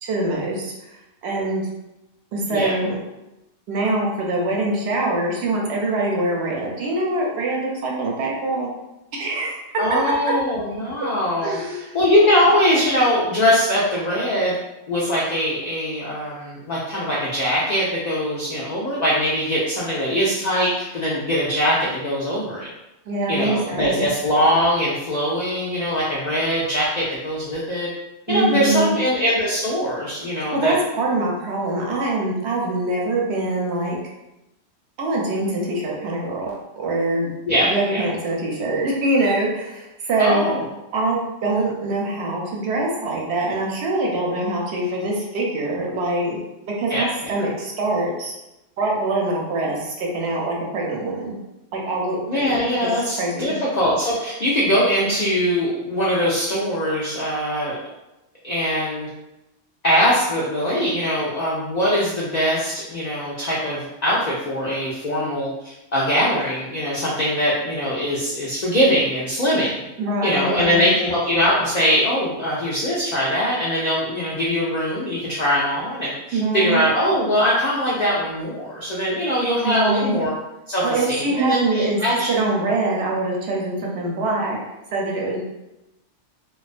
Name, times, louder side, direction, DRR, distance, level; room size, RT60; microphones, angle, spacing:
voice 1, 0.0-1.7 2.3-3.0 3.7-8.7 9.1-10.2 11.4-12.0 23.1-24.1 28.3-28.9 30.4-34.0 35.0-37.3 37.6-40.5 40.9-48.3 48.8-51.3 51.7-52.9 53.2-53.5 70.0-71.0 76.3-76.8 79.6-80.2 80.8-82.0 82.3-84.6 84.9-85.4, right 2 dB, 65° right, -2 dB, 0.8 m, -24 dB
voice 2, 9.8-11.6 11.9-14.6 14.9-22.7 23.3-27.9 28.3-30.7 37.5-38.0 40.2-40.6 46.9-47.3 52.3-57.8 58.4-59.1 59.8-69.8 70.2-80.3 80.7-82.3, equal, 70° left, -6 dB, 0.4 m, -22 dB
2.3 x 2.2 x 2.4 m, 0.95 s
omnidirectional pair, 1.3 m